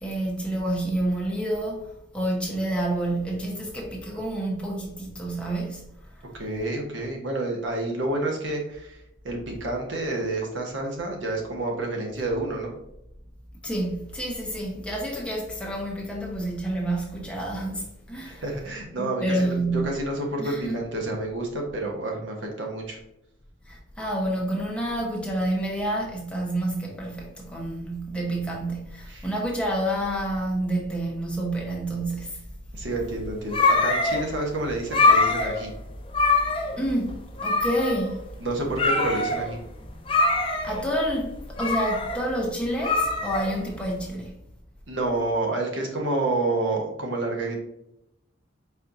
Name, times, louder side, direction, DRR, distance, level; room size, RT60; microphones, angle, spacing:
voice 1, 0.0-1.8 2.1-5.9 13.6-18.4 19.0-19.9 20.4-20.8 23.7-32.4 36.8-38.2 40.6-44.3, right 1 dB, 5° left, 0.9 m, -28 dB
voice 2, 6.3-9.0 9.2-12.7 18.2-23.0 29.1-29.3 32.7-35.7 38.4-39.6 44.9-47.6, right 2 dB, 75° right, 1.2 m, -29 dB
sound 1, 33.0-44.0, left 3 dB, 25° left, 0.5 m, -24 dB
4.4 x 4.2 x 2.6 m
head